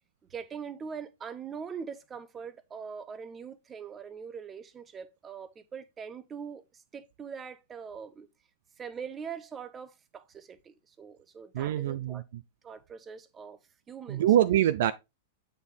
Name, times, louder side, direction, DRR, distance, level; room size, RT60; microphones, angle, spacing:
voice 1, 0.3-8.3 8.8-12.2 12.6-13.6 13.9-14.3, right 6 dB, 20° right, 0.8 m, -42 dB
voice 2, 11.5-12.2 14.1-14.9, right 11 dB, 55° right, 0.5 m, -24 dB
8.1 x 4.4 x 3.7 m
figure-of-eight pair, 100°, 0 cm